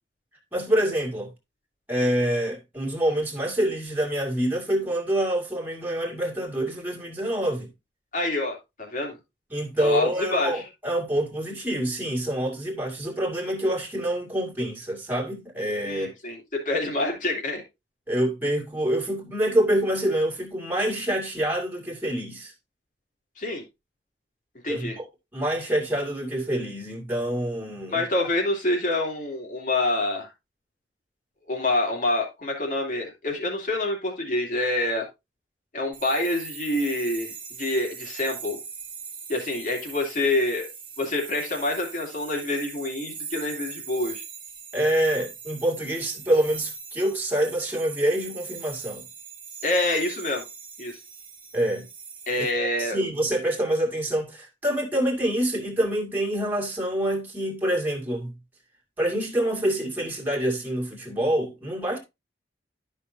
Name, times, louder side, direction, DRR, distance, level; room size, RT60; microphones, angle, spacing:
voice 1, 0.5-1.3 1.9-7.7 9.5-16.1 18.1-22.5 24.7-25.0 25.3-28.0 44.7-49.0 51.5-51.8 52.4-52.5 52.8-58.3 59.0-62.0, right 1 dB, 10° right, 2.2 m, -26 dB
voice 2, 8.1-9.2 9.8-10.6 15.8-17.6 23.4-23.6 24.6-25.0 27.9-30.3 31.5-35.1 35.7-38.6 39.3-40.7 41.0-44.2 49.6-50.4 50.8-51.0 52.3-53.0, left 2 dB, 50° left, 2.6 m, -27 dB
sound 1, 35.9-52.5, right 6 dB, 30° right, 1.6 m, -41 dB
12.5 x 5.4 x 2.6 m
head